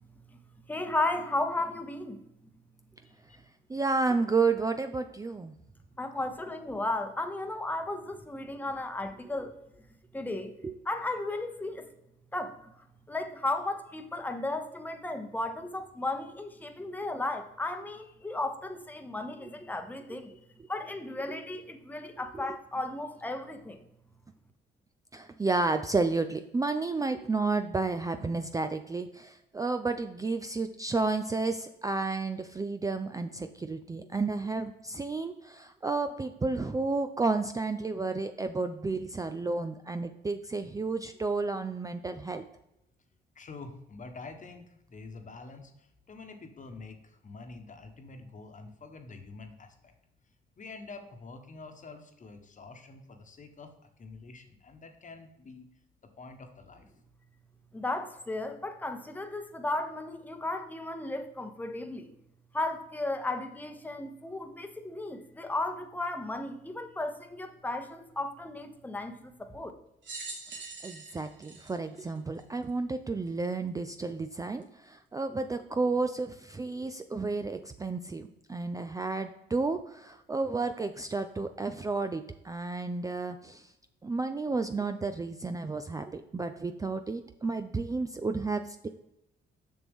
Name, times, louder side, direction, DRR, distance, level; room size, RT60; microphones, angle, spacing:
voice 1, 0.7-2.2 6.0-9.5 10.1-10.5 10.9-11.9 12.3-12.7 13.1-20.3 20.7-23.8 57.7-62.1 62.5-69.7, left 2 dB, 10° left, 6 dB, 0.8 m, -34 dB
voice 2, 3.0-3.4 43.3-49.9 50.6-53.7 54.0-55.7 56.2-56.9, left 3 dB, 40° left, 6 dB, 1.2 m, -47 dB
voice 3, 3.7-5.5 10.6-10.7 22.4-22.5 25.1-42.5 70.5-70.6 70.8-83.7 84.0-88.9, right 3 dB, 15° right, 8 dB, 0.4 m, -31 dB
sound 1, 70.0-72.7 73.4-73.5 74.6-74.7, right 3 dB, 65° right, 1.9 m, -43 dB
7.0 x 6.1 x 3.5 m, 0.86 s
cardioid pair, 90°, 20 cm